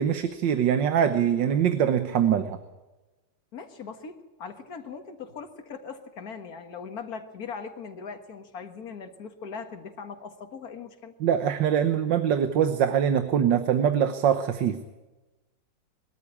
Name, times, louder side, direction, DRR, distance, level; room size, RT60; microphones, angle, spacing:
voice 1, 0.0-2.6 11.2-14.8, right 8 dB, 75° right, 9 dB, 1.7 m, -23 dB
voice 2, 3.5-11.1, left 5 dB, 55° left, 6 dB, 2.1 m, -40 dB
22.0 x 13.5 x 10.0 m, 1.1 s
omnidirectional pair, 2.0 m